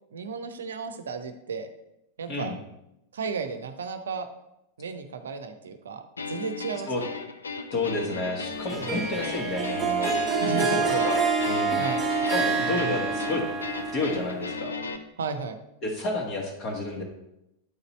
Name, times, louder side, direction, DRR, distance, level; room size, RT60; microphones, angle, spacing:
voice 1, 0.1-1.7 2.2-2.6 3.1-4.3 4.8-7.1 8.8-9.1 10.4-11.1 11.8-12.1 12.6-13.1 15.2-15.6, right 5 dB, 65° right, 9 dB, 0.6 m, -34 dB
sound 1, 6.2-15.0, left 4 dB, 75° left, 0.5 m, -36 dB
voice 2, 7.7-10.4 10.9-11.2 11.4-11.8 12.3-13.4 13.9-14.7 15.8-17.0, left 2 dB, 35° left, -1 dB, 1.4 m, -30 dB
Harp, 8.7-14.5, right 4 dB, 15° right, 1.1 m, -27 dB
8.7 x 4.0 x 4.1 m, 0.86 s
figure-of-eight pair, 90°, 0 cm